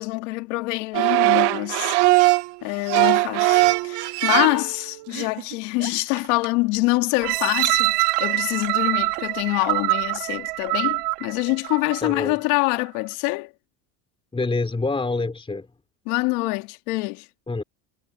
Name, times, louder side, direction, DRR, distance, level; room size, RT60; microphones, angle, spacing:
voice 1, 0.0-2.3 2.6-13.5 16.1-17.3, left 25 dB, 80° left, 2.3 m, -25 dB
sound 1, 0.9-2.5 2.9-4.8 5.1-5.5 5.8-5.9 6.2-6.4, right 24 dB, 65° right, 1.5 m, -20 dB
sound 2, 7.2-12.2 12.7-12.8, right 22 dB, 90° right, 3.4 m, -24 dB
voice 2, 12.0-12.4 14.3-15.7 17.5-17.6, left 3 dB, 10° left, 3.6 m, -26 dB
cardioid pair, 130°, 44 cm